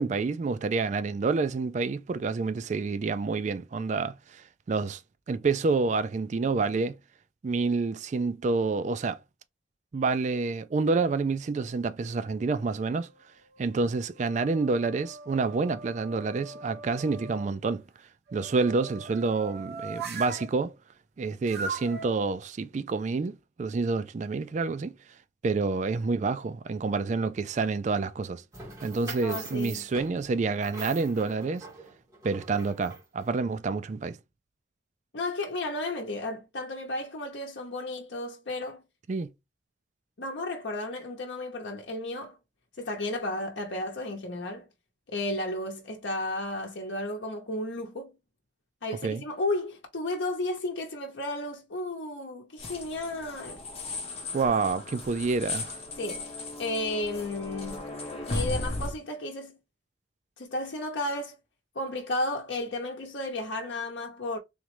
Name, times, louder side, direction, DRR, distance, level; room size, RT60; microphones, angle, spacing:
voice 1, 0.0-5.0 5.3-7.0 7.4-9.2 9.9-13.1 13.6-17.8 18.3-20.7 21.2-24.9 25.4-28.4 28.8-31.7 32.2-34.2 39.1-39.3 49.0-49.2 54.3-55.8, right 4 dB, 40° right, 0.3 m, -28 dB
sound 1, 12.2-12.9 13.5-17.5 18.3-20.5 21.5-22.1, right 4 dB, 55° right, 1.3 m, -41 dB
sound 2, 28.5-33.2, right 3 dB, 20° right, 2.0 m, -43 dB
voice 2, 29.0-29.8 35.1-38.8 40.2-42.4 42.8-44.7 45.1-48.2 48.8-53.6 56.0-56.3 56.6-57.9 58.3-59.6 60.4-61.4 61.7-64.4, left 2 dB, 75° left, 0.8 m, -33 dB
sound 3, 52.6-58.9, left 2 dB, 35° left, 1.1 m, -36 dB
3.6 x 3.1 x 3.0 m
head